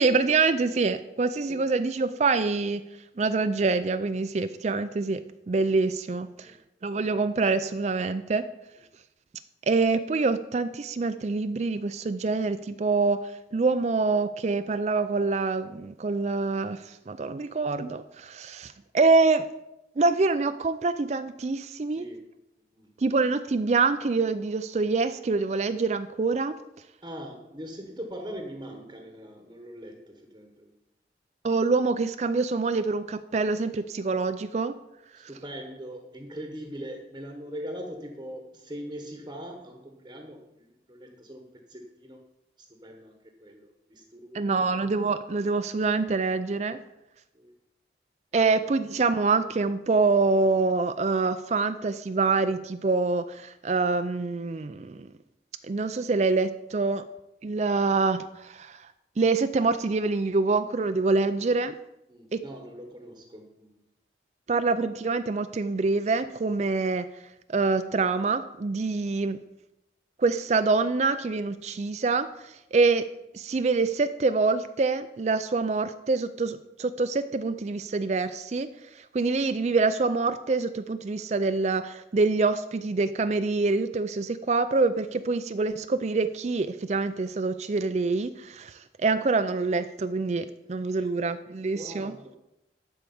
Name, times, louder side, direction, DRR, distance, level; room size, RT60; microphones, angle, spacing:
voice 1, 0.0-2.8 3.2-6.5 6.8-8.4 9.7-19.5 20.0-22.0 23.0-26.6 31.4-34.7 35.2-35.3 44.3-46.8 48.3-55.1 55.6-57.0 57.4-58.9 59.2-61.7 62.3-62.4 64.5-67.1 67.5-69.4 70.2-73.1 73.3-78.7 78.9-92.1, right 3 dB, 40° right, 11 dB, 0.4 m, -25 dB
voice 2, 21.9-22.4 22.7-22.9 27.0-30.7 35.1-42.2 42.6-44.7 47.3-47.6 48.3-48.6 62.1-63.8 90.9-91.1 91.7-92.4, equal, 25° right, 3 dB, 1.0 m, -42 dB
11.5 x 4.7 x 7.0 m, 0.89 s
head